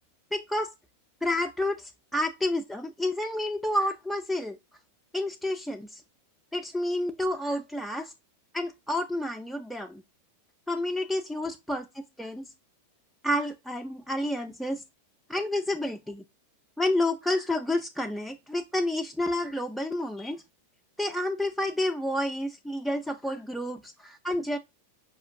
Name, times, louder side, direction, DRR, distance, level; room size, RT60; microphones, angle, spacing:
voice 1, 0.3-0.7 1.2-4.6 5.1-6.0 6.5-8.1 8.5-10.0 10.7-12.5 13.2-14.8 15.3-16.2 16.8-20.4 21.0-24.6, left 1 dB, ahead, 0.3 m, -30 dB
5.0 x 2.4 x 2.6 m
figure-of-eight pair, 90°, 0 cm